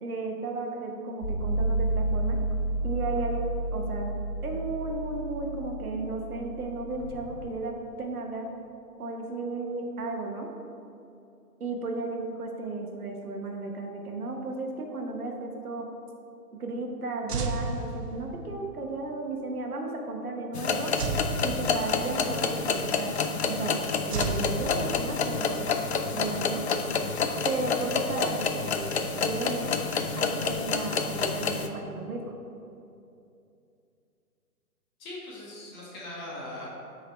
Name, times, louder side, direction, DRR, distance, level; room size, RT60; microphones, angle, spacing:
voice 1, 0.0-2.4 2.8-3.5 3.7-8.5 9.0-10.5 11.6-15.9 16.5-21.0 21.4-23.1 23.4-23.7 24.0-25.7 26.1-26.6 27.4-29.8 30.2-32.3, right 3 dB, 70° right, 2 dB, 1.1 m, -34 dB
sound 1, 1.2-7.4, right 2 dB, 75° left, 1.2 m, -31 dB
sound 2, 17.3-18.6 21.0-22.3 24.1-25.4, right 3 dB, 85° right, 0.7 m, -33 dB
sound 3, 20.5-31.7, left 5 dB, 50° left, 0.4 m, -28 dB
voice 2, 35.0-36.7, left 1 dB, 15° left, -6 dB, 0.9 m, -40 dB
6.8 x 3.9 x 4.3 m, 2.6 s
figure-of-eight pair, 140°, 45 cm